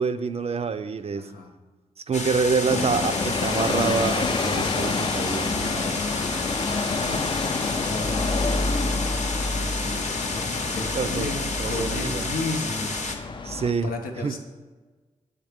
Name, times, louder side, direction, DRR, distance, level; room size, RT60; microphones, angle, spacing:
voice 1, 0.0-1.3 2.1-5.7 10.9-11.3 11.6-12.3 13.4-13.9 14.2-14.3, right 5 dB, 45° right, 10 dB, 0.4 m, -26 dB
voice 2, 1.1-1.5 5.2-6.5 6.8-9.0 9.5-10.5 10.8-13.0 13.5-14.4, left 2 dB, 85° left, 2 dB, 0.8 m, -35 dB
sound 1, 2.1-13.2, left 3 dB, 55° left, 0.8 m, -31 dB
sound 2, 2.7-13.7, left 3 dB, 35° left, 0.4 m, -28 dB
7.3 x 3.4 x 5.0 m, 1.3 s
cardioid pair, 50°, 14 cm